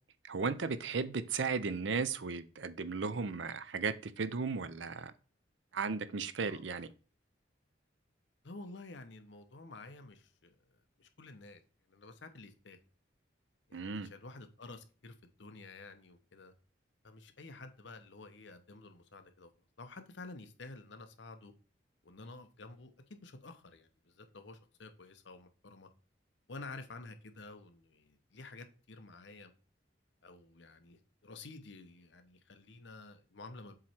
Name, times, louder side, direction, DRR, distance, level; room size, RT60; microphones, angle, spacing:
voice 1, 0.2-5.1 5.7-6.9 13.7-14.1, right 5 dB, 70° right, 0.6 m, -35 dB
voice 2, 8.4-10.5 11.0-11.6 11.9-12.8 13.7-16.5 17.0-19.5 19.8-21.5 22.0-25.9 26.5-29.5 30.2-33.8, left 3 dB, 65° left, 0.9 m, -51 dB
7.5 x 3.1 x 4.4 m
head